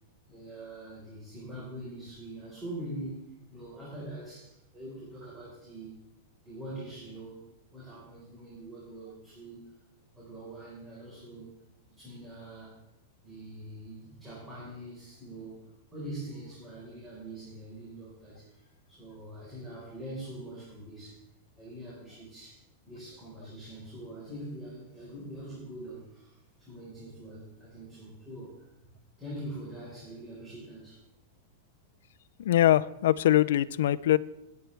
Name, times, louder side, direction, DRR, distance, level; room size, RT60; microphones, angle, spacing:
voice 1, 0.3-6.0 6.4-7.5 7.7-9.7 10.2-11.5 12.0-12.8 13.2-15.6 15.9-21.2 21.6-22.6 22.9-28.7 29.2-31.0, right 1 dB, 10° right, -8 dB, 4.4 m, -43 dB
voice 2, 32.4-34.2, left 13 dB, 75° left, 17 dB, 0.5 m, -23 dB
20.0 x 9.3 x 3.4 m, 0.88 s
supercardioid pair, 155°, 0 cm